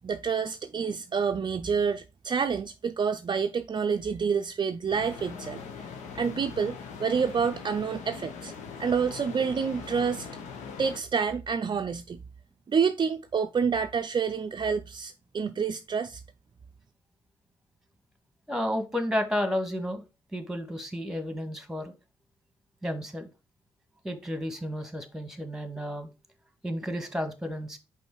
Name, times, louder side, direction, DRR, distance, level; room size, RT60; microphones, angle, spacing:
voice 1, 0.0-5.6 6.1-8.5 8.8-10.3 10.8-12.2 12.7-16.2, right 6 dB, 40° right, 0.5 m, -28 dB
sound 1, 4.9-11.0, left 5 dB, 75° left, 1.0 m, -41 dB
voice 2, 18.5-20.0 20.3-21.9 22.8-23.3 24.0-26.1 26.6-27.8, equal, 5° right, 1.6 m, -32 dB
5.2 x 4.3 x 4.7 m
hypercardioid pair, 45°, 12 cm